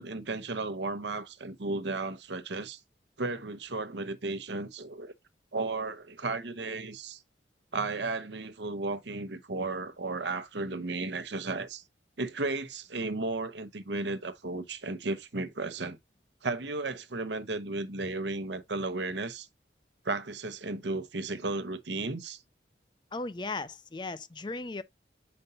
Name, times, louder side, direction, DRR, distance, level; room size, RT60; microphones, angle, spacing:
voice 1, 0.0-2.8 3.2-5.1 5.5-7.2 7.7-11.8 12.2-16.0 16.4-19.5 20.0-22.4, right 3 dB, 75° right, 0.9 m, -34 dB
voice 2, 23.1-24.8, left 3 dB, 25° left, 0.4 m, -36 dB
6.8 x 5.3 x 2.7 m
head